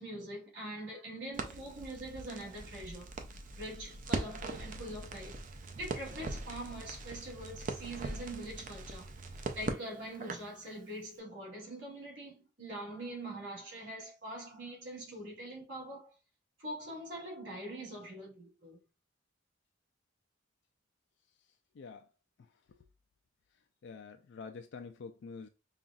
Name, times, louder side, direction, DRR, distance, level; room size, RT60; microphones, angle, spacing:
voice 1, 0.0-3.1 3.6-5.4 5.8-9.1 9.5-16.1 16.6-18.8, right 1 dB, 65° right, 2.3 m, -43 dB
Crackle, 1.3-10.6, right 2 dB, 40° right, 0.5 m, -41 dB
voice 2, 21.8-22.1 23.8-25.5, left 5 dB, 65° left, 0.4 m, -46 dB
5.4 x 2.4 x 2.3 m
head